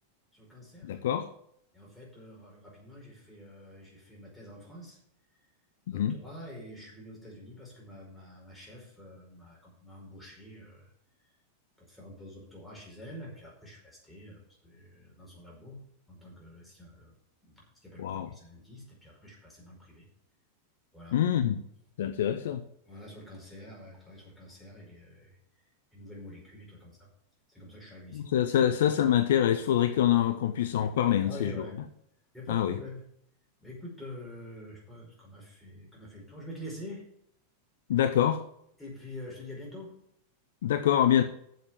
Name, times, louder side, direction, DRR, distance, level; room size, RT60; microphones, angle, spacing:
voice 1, 0.3-1.0 1.7-5.0 5.9-10.9 11.8-17.1 17.4-20.1 20.9-21.2 22.8-25.4 25.9-27.1 27.5-28.8 31.1-31.8 32.3-33.1 33.6-37.1 38.8-40.0, left 1 dB, 5° left, 4.9 m, -47 dB
voice 2, 0.8-1.3 5.9-6.2 18.0-18.3 21.1-21.6 22.0-22.6 28.1-31.5 32.5-32.7 37.9-38.4 40.6-41.2, left 10 dB, 60° left, 0.7 m, -25 dB
7.7 x 7.4 x 7.4 m
figure-of-eight pair, 90°, 0 cm